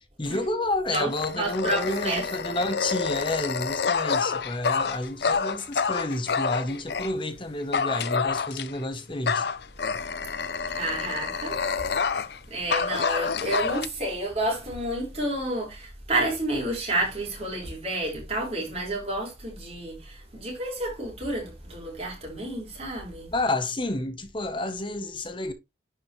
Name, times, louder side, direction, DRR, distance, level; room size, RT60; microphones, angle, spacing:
voice 1, 0.0-9.5 23.3-25.5, left 2 dB, 25° left, 1.0 m, -30 dB
Dog, 0.9-7.1 7.7-8.8 9.3-12.4 12.7-13.9, left 5 dB, 60° left, 0.6 m, -28 dB
voice 2, 1.4-2.3 10.7-11.6 11.9-12.2 12.5-23.3, right 1 dB, 35° right, 5.1 m, -30 dB
10.5 x 5.7 x 3.1 m
head